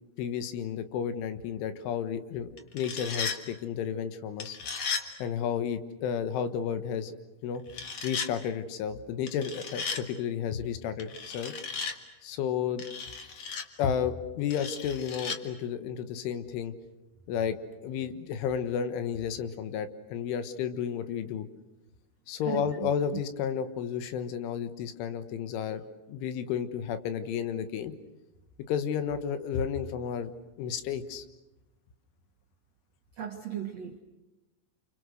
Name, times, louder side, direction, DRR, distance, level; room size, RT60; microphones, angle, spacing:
voice 1, 0.2-4.6 5.2-7.1 7.4-7.6 8.0-11.5 12.2-12.8 13.8-16.7 17.3-17.6 17.8-21.5 22.3-25.8 26.1-27.9 28.7-30.3 30.6-31.3, left 8 dB, 85° left, 10 dB, 3.9 m, -32 dB
sound 1, 2.6-3.4 4.4-5.1 7.7-8.3 9.3-10.0 11.0-12.0 12.8-13.7 14.5-15.4, left 5 dB, 55° left, 1.9 m, -35 dB
voice 2, 22.5-23.2 33.2-34.0, right 10 dB, 75° right, 3 dB, 1.5 m, -37 dB
29.5 x 27.5 x 6.4 m, 1.0 s
omnidirectional pair, 5.4 m